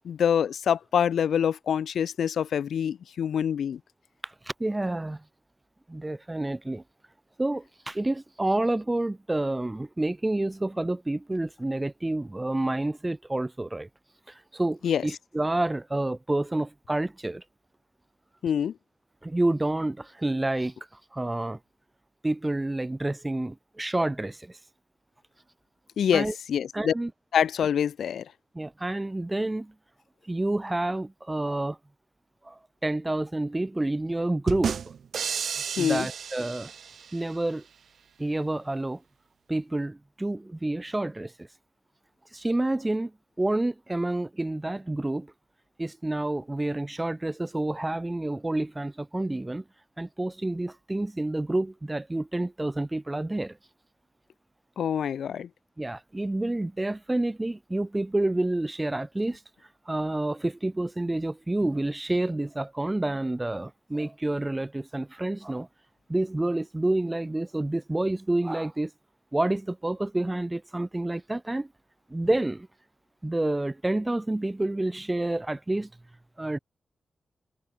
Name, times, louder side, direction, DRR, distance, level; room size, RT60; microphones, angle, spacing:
voice 1, 0.0-3.8 14.8-15.0 18.4-18.7 26.0-26.9 27.3-28.3 35.8-36.1 54.8-55.5, left 8 dB, 80° left, 0.4 m, -25 dB
voice 2, 4.2-5.2 5.9-6.8 7.4-13.9 14.3-17.4 19.2-20.7 21.1-21.6 22.2-24.6 26.1-26.3 26.7-27.1 28.5-29.7 30.3-31.8 32.4-34.8 35.8-36.7 37.1-37.6 38.2-39.0 39.5-41.5 42.3-45.3 45.8-49.6 50.0-53.6 55.8-59.4 59.9-65.7 66.1-68.9 69.3-71.7 72.1-72.7 73.2-75.9 76.4-76.6, right 2 dB, 20° right, 1.9 m, -29 dB
sound 1, 34.5-37.3, right 7 dB, 75° right, 0.8 m, -32 dB
cardioid pair, 50°, 0 cm